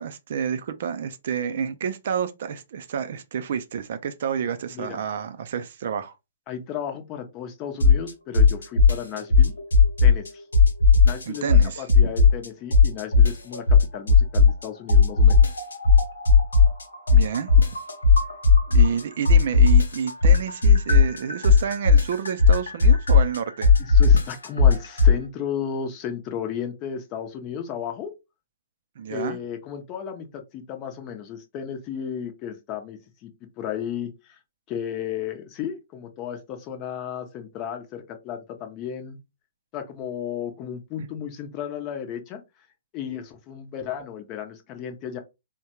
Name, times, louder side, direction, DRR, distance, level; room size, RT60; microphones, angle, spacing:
voice 1, 0.0-6.1 11.3-11.9 17.1-17.7 18.7-23.7 29.0-29.4, right 7 dB, 55° right, 0.4 m, -29 dB
voice 2, 6.5-9.5 10.0-10.4 11.0-15.4 23.8-28.1 29.1-33.3 33.6-34.4 34.7-39.2 39.7-42.4 42.9-45.2, left 8 dB, 30° left, 0.7 m, -34 dB
sound 1, 7.8-8.1 8.3-10.3 10.5-12.5 12.7-14.6 14.9-19.0 19.2-25.2, left 5 dB, 85° left, 0.8 m, -15 dB
3.6 x 2.2 x 2.9 m
hypercardioid pair, 130°, 0 cm